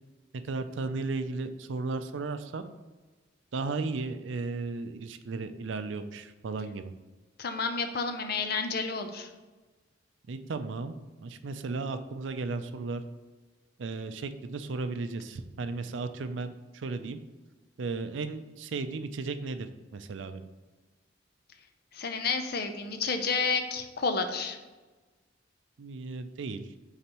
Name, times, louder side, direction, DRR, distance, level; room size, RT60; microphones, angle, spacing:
voice 1, 0.4-2.6 3.5-6.9 10.3-13.0 13.8-17.2 17.8-20.4 25.8-26.7, right 3 dB, 75° right, 10 dB, 0.5 m, -35 dB
voice 2, 7.4-9.3 21.9-24.6, left 4 dB, 55° left, 7 dB, 0.6 m, -30 dB
8.7 x 4.0 x 3.0 m, 1.2 s
head